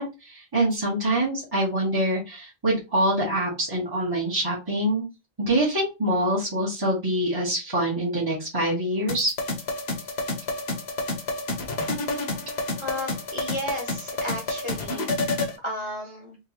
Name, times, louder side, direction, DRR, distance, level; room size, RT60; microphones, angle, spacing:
voice 1, 0.0-5.0 5.4-9.3, right 1 dB, 20° right, -8 dB, 1.4 m, -25 dB
sound 1, 9.1-15.6, left 2 dB, 80° left, 1.1 m, -29 dB
voice 2, 12.8-16.4, left 1 dB, 30° left, -2 dB, 0.9 m, -34 dB
3.7 x 2.7 x 2.9 m, 0.26 s
omnidirectional pair, 1.1 m